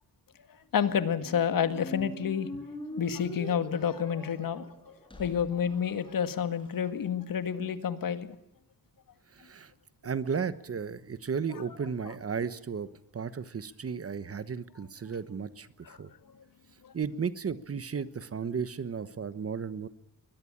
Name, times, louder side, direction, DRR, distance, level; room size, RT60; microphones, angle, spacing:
voice 1, 0.7-2.5 2.9-4.7 5.2-8.3 12.0-12.1 15.8-16.0 16.8-16.9, left 8 dB, 65° left, 11 dB, 1.8 m, -29 dB
Squeak, 0.8-6.8, equal, 15° left, 6.1 m, -44 dB
voice 2, 9.4-9.7 10.0-12.9 13.1-15.7 16.0-16.1 16.9-19.9, right 6 dB, 40° right, 14 dB, 1.2 m, -34 dB
21.0 x 21.0 x 8.7 m, 0.75 s
wide cardioid pair, 125°, 36 cm